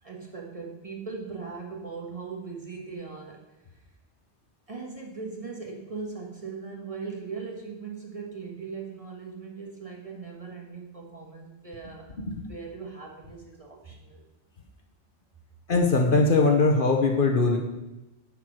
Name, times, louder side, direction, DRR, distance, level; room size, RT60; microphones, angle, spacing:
voice 1, 0.0-3.4 4.7-12.1 12.3-14.2, right 5 dB, 30° right, -1 dB, 1.5 m, -39 dB
voice 2, 15.7-17.6, left 3 dB, 50° left, 3 dB, 1.1 m, -21 dB
9.8 x 4.8 x 6.1 m, 0.97 s
omnidirectional pair, 1.2 m